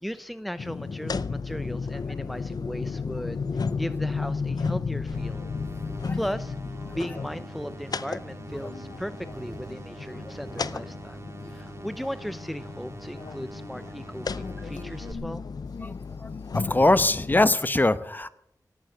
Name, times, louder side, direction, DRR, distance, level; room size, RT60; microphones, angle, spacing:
voice 1, 0.0-5.4 6.1-6.6 6.9-11.2 11.5-15.4, equal, ahead, 13 dB, 0.6 m, -37 dB
sound 1, 0.6-17.5, left 4 dB, 70° left, 0.5 m, -34 dB
sound 2, 4.9-11.7, right 2 dB, 80° right, 4.8 m, -49 dB
sound 3, 5.1-15.1, right 2 dB, 40° right, 1.8 m, -44 dB
voice 2, 16.5-18.3, left 2 dB, 25° left, 13 dB, 0.9 m, -22 dB
17.5 x 9.5 x 7.8 m, 0.73 s
wide cardioid pair, 75°, 7 cm